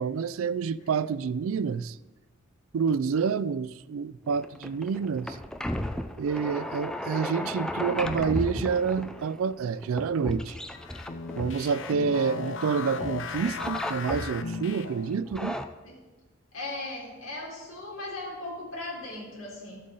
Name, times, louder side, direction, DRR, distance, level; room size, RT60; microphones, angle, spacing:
voice 1, 0.0-2.0 2.7-5.4 6.2-10.6 11.4-15.6, right 6 dB, 80° right, 0.4 m, -28 dB
sound 1, 4.3-12.6 13.0-14.6 15.1-15.7, left 1 dB, 5° left, 0.4 m, -35 dB
sound 2, 10.7-15.2, left 5 dB, 65° left, 0.6 m, -36 dB
voice 2, 16.5-19.8, left 2 dB, 80° left, 3.9 m, -38 dB
13.5 x 7.7 x 3.9 m
head